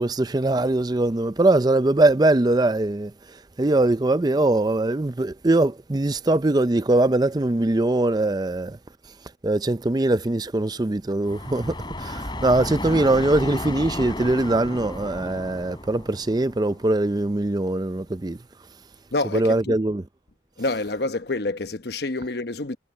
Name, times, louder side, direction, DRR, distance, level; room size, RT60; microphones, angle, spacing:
voice 1, 0.0-8.8 9.4-18.4 19.3-20.0, right 2 dB, 20° right, 0.4 m, -22 dB
sound 1, 11.2-17.0, left 1 dB, 25° left, 4.2 m, -33 dB
voice 2, 19.1-19.8 20.6-22.8, left 2 dB, 60° left, 1.0 m, -27 dB
head